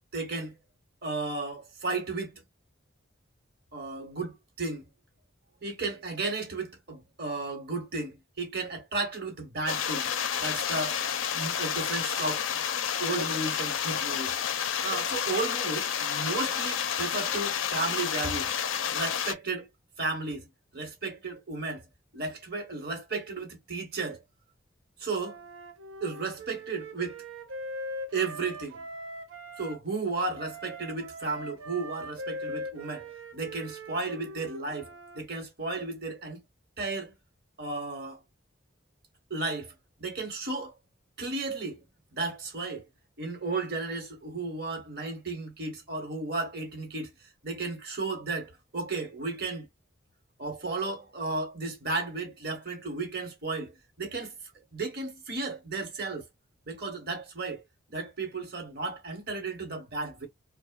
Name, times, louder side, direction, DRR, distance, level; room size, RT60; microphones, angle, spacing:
voice 1, 0.1-0.6 1.0-2.4 3.7-4.9 5.6-10.1 10.4-11.0 11.3-12.5 13.0-14.4 14.8-18.5 18.9-19.7 20.0-20.5 20.7-21.8 22.1-24.2 25.0-25.4 26.0-27.2 28.1-28.8 29.6-33.1 33.3-36.4 36.8-37.2 37.6-38.2 39.3-39.7 40.0-40.7 41.2-41.8 42.1-42.8 43.2-47.1 47.4-49.7 50.4-54.3 54.7-56.2 56.7-57.6 57.9-60.3, right 3 dB, 50° right, 1.0 m, -34 dB
sound 1, 9.7-19.3, left 8 dB, 80° left, 0.5 m, -30 dB
Wind instrument woodwind instrument, 25.1-29.8 30.4-35.2, equal, 90° right, 0.6 m, -41 dB
2.9 x 2.1 x 2.2 m
head